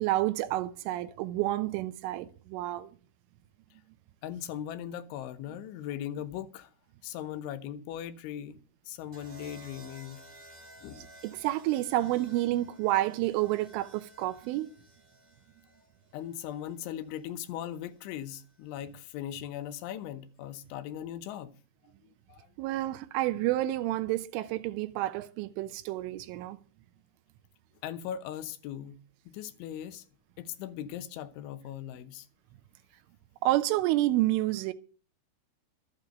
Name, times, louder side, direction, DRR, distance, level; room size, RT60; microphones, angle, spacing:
voice 1, 0.0-2.9 11.0-14.7 22.6-26.6 33.4-34.7, right 15 dB, 90° right, 3.3 m, -29 dB
voice 2, 4.2-6.7 7.0-8.6 8.9-10.2 10.8-11.1 16.1-21.5 22.3-22.5 27.8-29.0 29.3-30.0 30.4-32.3, left 10 dB, 80° left, 3.3 m, -39 dB
sound 1, 9.1-17.2 18.5-18.8, right 1 dB, 30° right, 0.8 m, -55 dB
12.5 x 8.8 x 6.5 m
omnidirectional pair, 5.5 m